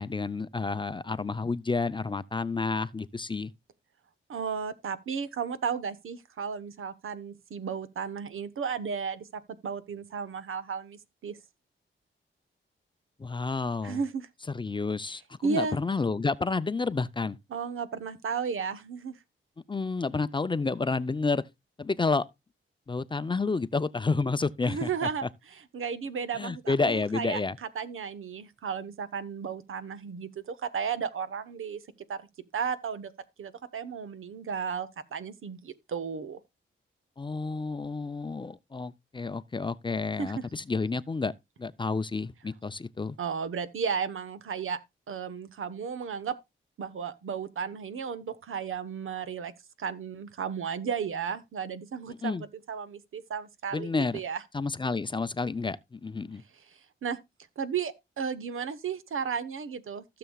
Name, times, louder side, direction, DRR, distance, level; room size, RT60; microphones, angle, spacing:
voice 1, 0.0-3.5 13.2-14.0 14.5-17.4 19.7-21.4 21.8-22.3 22.9-25.3 26.4-27.6 37.2-41.3 41.6-43.2 52.2-52.4 53.7-54.2 54.5-56.4, left 4 dB, 25° left, 0.5 m, -30 dB
voice 2, 4.3-11.4 13.8-14.3 15.4-15.8 17.5-19.2 24.6-25.3 25.5-31.8 32.1-32.3 32.5-33.1 33.4-36.4 40.2-40.5 43.2-44.8 45.1-46.4 46.8-49.5 49.8-52.4 52.7-54.4 56.7-57.2 57.6-60.0, right 6 dB, 80° right, 1.1 m, -34 dB
16.0 x 6.9 x 2.3 m
wide cardioid pair, 110°, 21 cm